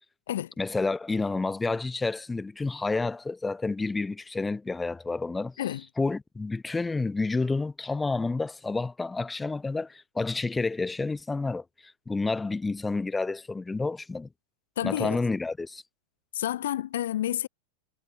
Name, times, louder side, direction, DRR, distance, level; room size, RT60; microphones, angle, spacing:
voice 1, 0.6-5.5 6.0-14.3 14.8-15.8, left 3 dB, 10° left, 0.5 m, -29 dB
voice 2, 14.8-15.2 16.3-17.5, left 12 dB, 60° left, 0.3 m, -29 dB
figure-of-eight pair, 90°, 0 cm